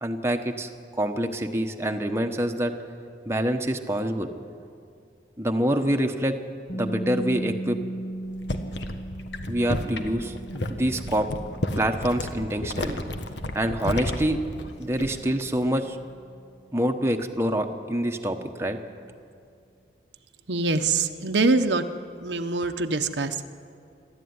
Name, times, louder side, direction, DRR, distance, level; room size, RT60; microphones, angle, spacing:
voice 1, 0.0-2.7 3.3-4.3 5.4-6.4 6.7-7.8 9.5-10.3 10.7-11.3 11.8-13.0 13.5-14.4 14.8-16.0 16.7-18.8, right 1 dB, 15° right, 4 dB, 1.1 m, -26 dB
sound 1, 6.7-18.5, right 1 dB, 50° left, 1.1 m, -38 dB
sound 2, 8.2-15.4 15.7-16.0, left 1 dB, 85° left, 1.5 m, -32 dB
voice 2, 20.5-21.8 22.2-23.5, right 3 dB, 90° right, 6 dB, 1.1 m, -24 dB
27.5 x 12.5 x 9.6 m, 2.4 s
head